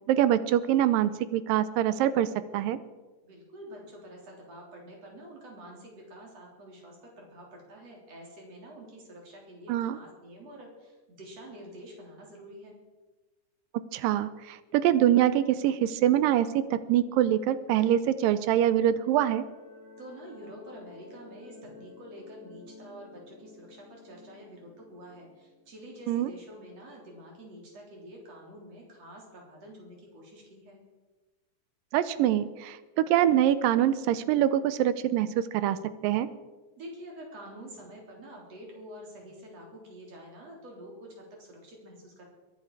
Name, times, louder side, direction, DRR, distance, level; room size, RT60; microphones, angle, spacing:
voice 1, 0.1-2.8 9.7-10.0 13.9-19.4 26.1-26.3 31.9-35.8 36.0-36.3, right 11 dB, 85° right, 14 dB, 2.3 m, -24 dB
voice 2, 3.2-12.8 20.0-30.8 36.8-42.3, equal, 45° right, -1 dB, 4.5 m, -47 dB
sound 1, 18.4-26.9, left 3 dB, 10° left, 2.6 m, -52 dB
22.5 x 11.0 x 4.8 m, 1.2 s
omnidirectional pair, 4.0 m